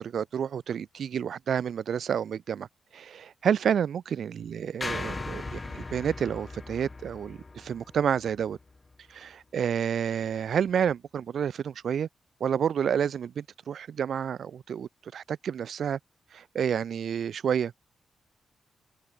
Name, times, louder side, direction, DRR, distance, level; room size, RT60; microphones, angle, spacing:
voice 1, 0.0-2.7 2.9-8.6 9.1-12.1 12.4-16.0 16.3-17.7, right 8 dB, 70° right, 0.5 m, -29 dB
sound 1, 4.8-9.1, left 3 dB, 25° left, 1.2 m, -39 dB
open air
wide cardioid pair, 130°, 0 cm